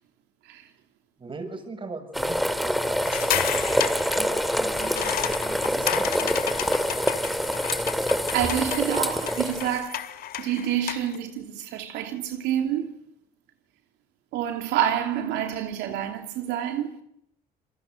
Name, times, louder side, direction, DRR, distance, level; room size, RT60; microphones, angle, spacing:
voice 1, 1.2-6.4, right 3 dB, 30° right, 7.1 m, -40 dB
sound 1, 2.1-9.8, equal, ahead, 2.5 m, -26 dB
sound 2, 3.0-11.2, left 11 dB, 65° left, 2.3 m, -32 dB
voice 2, 8.0-10.0 10.4-12.9 14.3-16.9, right 10 dB, 90° right, 2.9 m, -28 dB
28.5 x 23.0 x 7.9 m
cardioid pair, 110°, 17 cm